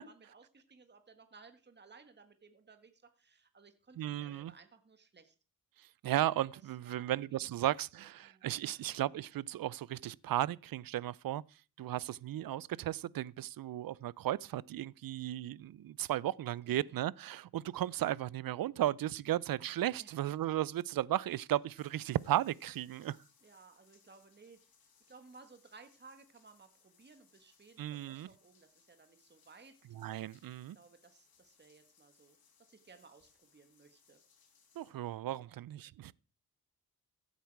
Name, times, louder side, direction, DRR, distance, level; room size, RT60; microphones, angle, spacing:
voice 1, 0.0-5.3 6.8-7.6 7.9-8.9 16.6-17.0 20.0-20.3 23.4-24.6 25.1-29.7 30.7-32.4 32.7-34.2 35.4-35.6, right 4 dB, 30° right, 1.6 m, -59 dB
voice 2, 4.0-4.5 5.8-11.4 11.8-23.2 27.8-28.3 30.0-30.8 34.8-36.1, right 13 dB, 70° right, 0.5 m, -35 dB
sound 1, 20.6-20.7 21.0-34.9, left 6 dB, 80° left, 3.0 m, -69 dB
15.5 x 8.3 x 4.7 m
wide cardioid pair, 115°, 36 cm